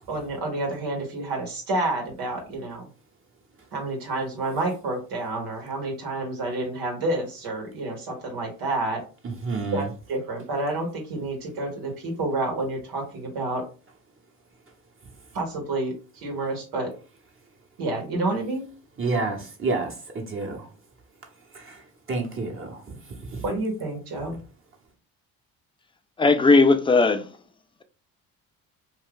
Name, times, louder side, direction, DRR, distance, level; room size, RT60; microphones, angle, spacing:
voice 1, 0.1-2.8 3.7-9.0 9.7-13.6 15.3-16.9 17.8-18.6 23.4-24.4, right 2 dB, 75° right, 1.2 m, -29 dB
voice 2, 9.4-9.8 19.0-20.6 21.5-21.8 22.1-22.8 23.3-23.4, right 3 dB, 35° right, 1.1 m, -29 dB
voice 3, 26.2-27.3, left 3 dB, 15° left, 0.4 m, -17 dB
2.6 x 2.3 x 3.6 m
supercardioid pair, 80°, 37 cm